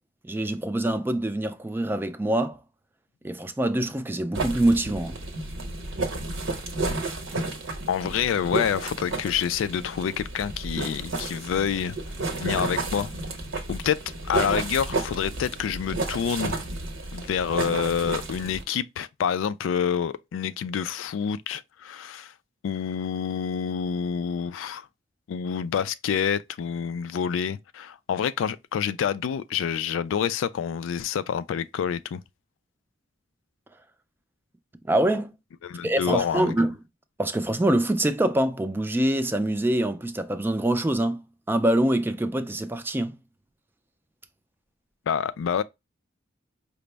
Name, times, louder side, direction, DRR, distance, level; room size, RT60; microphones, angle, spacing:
voice 1, 0.2-2.6 3.2-5.2 34.9-35.3 35.8-36.7 37.2-41.2 41.5-43.2, right 1 dB, 10° right, 0.3 m, -24 dB
sound 1, 4.3-18.6, right 2 dB, 85° right, 0.9 m, -32 dB
voice 2, 7.9-12.0 12.4-13.1 13.7-14.0 14.3-16.6 17.1-22.3 22.6-24.9 25.3-32.2 35.6-36.6 45.1-45.6, left 7 dB, 85° left, 0.3 m, -27 dB
5.0 x 2.0 x 3.3 m
head